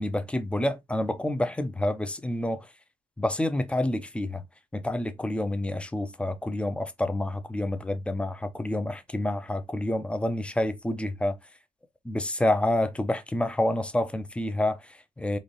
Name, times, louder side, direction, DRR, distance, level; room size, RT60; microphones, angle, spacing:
voice 1, 0.0-2.7 3.2-4.4 4.7-11.4 12.0-15.4, left 1 dB, 5° left, 0.6 m, -28 dB
3.9 x 2.5 x 3.1 m
cardioid pair, 110°, 17 cm